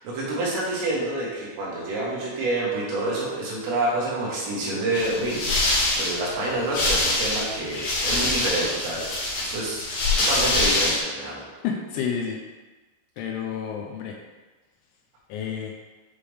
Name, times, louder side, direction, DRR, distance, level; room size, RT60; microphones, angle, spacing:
voice 1, 0.0-9.8 10.2-11.4, right 2 dB, 80° right, -6 dB, 4.2 m, -28 dB
sound 1, 4.9-11.0, left 2 dB, 60° left, 2.9 m, -24 dB
voice 2, 11.6-12.4 13.2-14.2 15.3-15.7, left 7 dB, 80° left, 1 dB, 2.9 m, -29 dB
9.6 x 3.4 x 3.4 m, 1.2 s
omnidirectional pair, 5.8 m